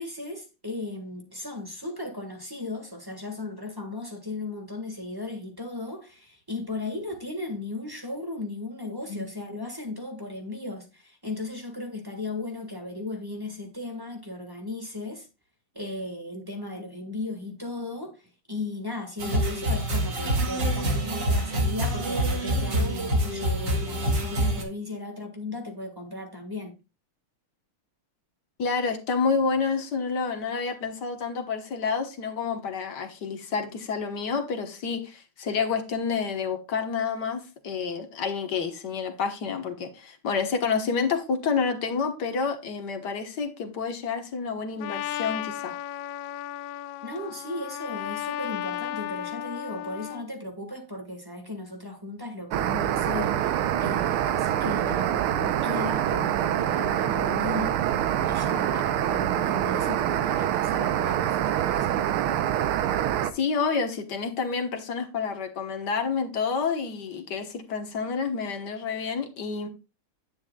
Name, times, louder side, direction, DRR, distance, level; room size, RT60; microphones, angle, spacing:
voice 1, 0.0-15.3 15.7-26.7 47.0-62.0, left 2 dB, 10° right, 1.2 m, -36 dB
sound 1, 19.2-24.6, right 1 dB, 55° right, 2.4 m, -26 dB
voice 2, 28.6-45.7 63.3-69.7, left 5 dB, 55° left, 1.7 m, -29 dB
Trumpet, 44.8-50.3, left 12 dB, 75° left, 1.2 m, -34 dB
sound 2, 52.5-63.3, right 11 dB, 85° right, 1.6 m, -25 dB
10.0 x 9.1 x 2.3 m
omnidirectional pair, 2.4 m